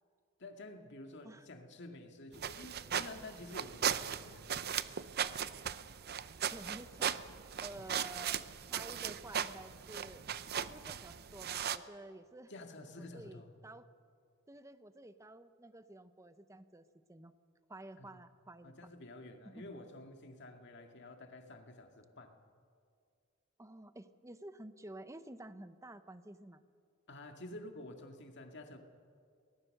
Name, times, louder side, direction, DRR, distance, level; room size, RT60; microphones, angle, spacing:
voice 1, 0.4-4.5 7.8-8.0 12.5-13.5 18.0-18.1 18.6-22.4 27.1-28.8, left 2 dB, 55° left, 4 dB, 2.1 m, -50 dB
sound 1, 2.3-11.8, right 8 dB, 50° right, 0.6 m, -38 dB
voice 2, 6.4-7.1 7.6-10.3 10.7-12.5 13.0-13.9 14.5-17.3 17.7-18.8 19.4-19.6 23.6-26.6, right 1 dB, 15° right, 11 dB, 0.8 m, -51 dB
24.0 x 18.5 x 6.6 m, 2.2 s
head